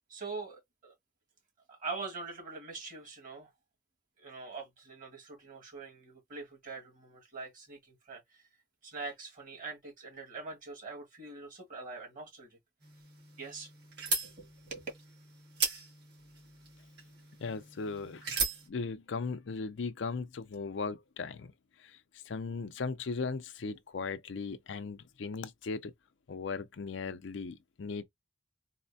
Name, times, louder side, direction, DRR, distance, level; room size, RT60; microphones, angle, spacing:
voice 1, 0.1-0.9 1.7-3.5 4.2-8.5 8.8-12.6 13.4-13.7 14.2-14.8, right 4 dB, 50° right, 1.7 m, -44 dB
sound 1, 12.8-18.7, right 4 dB, 65° right, 2.1 m, -38 dB
voice 2, 17.4-18.3 18.7-21.5 21.8-22.0 22.2-25.9 26.3-28.0, left 4 dB, 80° left, 0.5 m, -37 dB
4.1 x 2.1 x 2.7 m
head